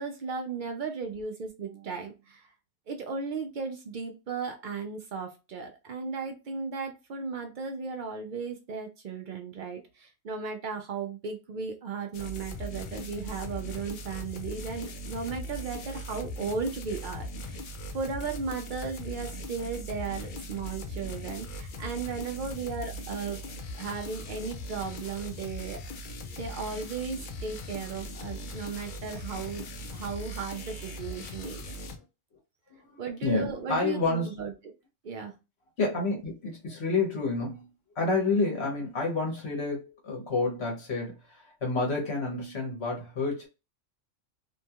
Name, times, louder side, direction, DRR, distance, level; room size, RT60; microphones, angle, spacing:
voice 1, 0.0-2.5 2.9-17.6 17.9-23.4 23.8-25.8 26.4-29.7 29.9-31.6 33.0-34.5 35.0-35.3, right 5 dB, 75° right, 0.4 m, -36 dB
sound 1, 12.1-32.0, left 1 dB, 85° left, 0.4 m, -39 dB
voice 2, 32.9-34.3 35.8-37.6 37.9-43.5, left 3 dB, 55° left, 1.1 m, -29 dB
2.7 x 2.3 x 2.7 m
omnidirectional pair, 1.4 m